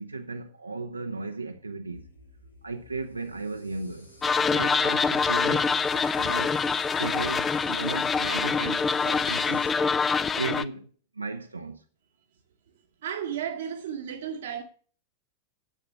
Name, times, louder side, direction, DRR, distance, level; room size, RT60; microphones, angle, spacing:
voice 1, 0.0-2.1 2.6-4.1 4.5-6.6 6.9-9.7 10.3-10.9 11.1-11.8, right 3 dB, 80° right, 0.8 m, -35 dB
sound 1, 1.9-9.7, left 1 dB, 85° left, 2.9 m, -50 dB
sound 2, 4.2-10.6, left 5 dB, 20° left, 0.6 m, -25 dB
voice 2, 13.0-14.6, right 8 dB, 60° right, 1.1 m, -33 dB
9.9 x 7.9 x 6.7 m
figure-of-eight pair, 90°, 0 cm